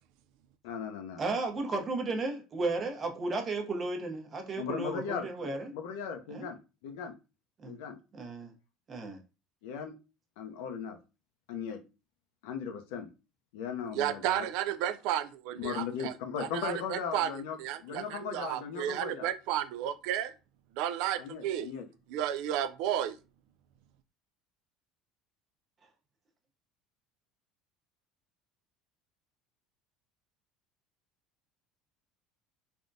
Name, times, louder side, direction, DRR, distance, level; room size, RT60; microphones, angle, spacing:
voice 1, 0.6-1.2 4.6-7.1 7.7-8.0 9.6-9.9 10.4-11.0 11.5-11.8 12.4-13.1 13.5-14.4 15.6-17.6 17.8-19.3 21.2-21.9, left 6 dB, 80° left, 0.6 m, -38 dB
voice 2, 1.2-5.7 6.3-6.5 7.6-7.8 8.1-8.5 8.9-9.2, right 3 dB, 30° right, 0.8 m, -34 dB
voice 3, 13.9-16.1 16.4-17.3 17.6-20.3 20.8-21.7 22.1-23.2, right 11 dB, 70° right, 0.3 m, -32 dB
3.5 x 2.2 x 2.6 m
supercardioid pair, 115°, 0 cm